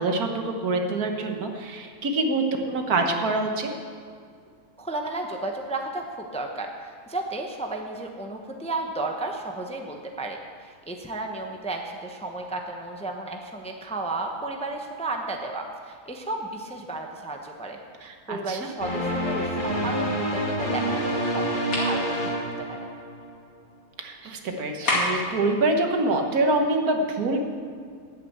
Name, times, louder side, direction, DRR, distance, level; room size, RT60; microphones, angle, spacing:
voice 1, 0.0-3.7 18.0-18.6 24.0-27.4, right 2 dB, 75° right, 4 dB, 1.7 m, -25 dB
voice 2, 4.8-17.8 18.3-21.5 21.8-22.8, right 2 dB, 5° left, 2 dB, 0.6 m, -33 dB
sound 1, 18.8-23.3, equal, 35° left, 1.7 m, -27 dB
sound 2, 21.7-22.0 24.8-25.3, left 1 dB, 65° left, 2.9 m, -25 dB
10.5 x 8.5 x 7.9 m, 2.1 s
omnidirectional pair, 1.6 m